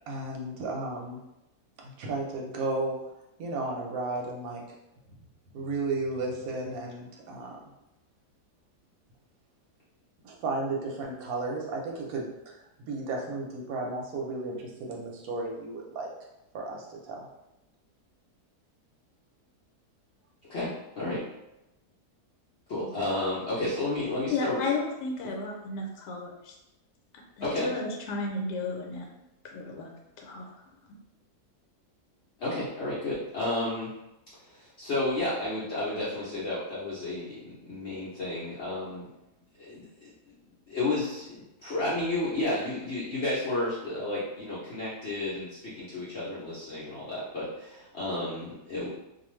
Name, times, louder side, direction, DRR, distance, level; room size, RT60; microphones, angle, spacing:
voice 1, 0.1-1.2 1.8-3.0 3.4-4.6 5.5-7.5 10.2-12.5 12.9-16.1 16.5-17.3 22.8-23.0, right 2 dB, 65° right, -1 dB, 1.0 m, -33 dB
voice 2, 20.5-21.2 22.7-24.6 27.4-27.7 32.4-33.9 34.4-39.1 39.6-39.9 40.7-48.9, left 2 dB, 55° left, -9 dB, 0.8 m, -32 dB
voice 3, 24.3-26.5 27.4-29.1 29.4-29.9 30.2-30.5, left 3 dB, 80° left, 0 dB, 1.2 m, -33 dB
2.5 x 2.4 x 3.1 m, 0.91 s
omnidirectional pair, 1.8 m